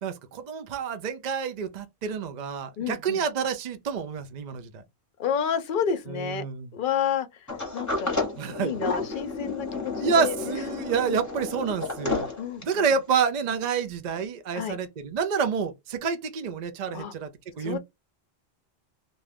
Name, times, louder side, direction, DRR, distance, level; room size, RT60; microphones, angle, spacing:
voice 1, 0.0-4.8 6.1-6.7 8.4-8.7 10.0-12.3 12.6-17.3 17.6-17.8, right 6 dB, 50° right, 0.6 m, -28 dB
voice 2, 2.8-3.2 5.2-6.4 6.7-8.2 8.6-10.3 12.4-12.9 14.5-14.8 16.9-17.1 17.6-17.8, left 8 dB, 60° left, 0.7 m, -30 dB
Sliding door, 7.5-12.9, left 3 dB, 15° left, 1.1 m, -31 dB
2.6 x 2.3 x 3.3 m
omnidirectional pair, 1.1 m